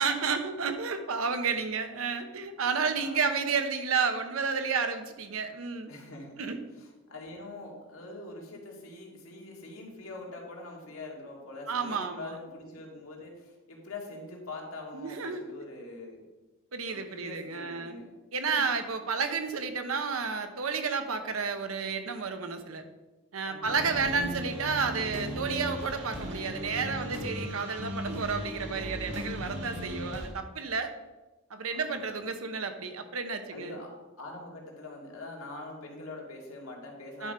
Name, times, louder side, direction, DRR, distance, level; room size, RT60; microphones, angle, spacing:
voice 1, 0.0-5.9 6.4-6.6 11.7-12.3 14.9-15.4 16.7-18.0 18.3-22.8 23.3-30.9 31.5-33.7 37.2-37.3, right 5 dB, 80° right, 8 dB, 0.9 m, -31 dB
voice 2, 2.9-3.2 5.9-16.3 16.9-18.1 18.5-18.9 23.5-24.4 31.7-32.3 33.5-37.3, left 2 dB, 80° left, -1 dB, 2.1 m, -44 dB
sound 1, 23.6-30.3, equal, 55° right, 1.3 m, -37 dB
10.0 x 4.3 x 5.2 m, 1.1 s
head